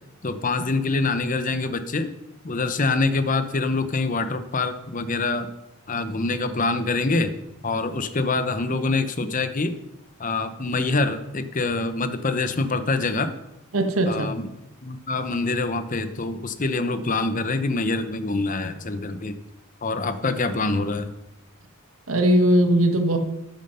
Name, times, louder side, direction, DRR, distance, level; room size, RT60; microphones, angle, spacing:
voice 1, 0.2-2.1 2.4-5.5 5.9-7.3 7.6-9.7 10.2-13.3 14.1-14.5 14.8-19.3 19.8-21.1, left 3 dB, 40° left, 10 dB, 0.8 m, -25 dB
voice 2, 13.7-14.3 22.1-23.2, right 1 dB, 85° right, 5 dB, 1.6 m, -19 dB
11.0 x 9.1 x 5.6 m, 0.89 s
head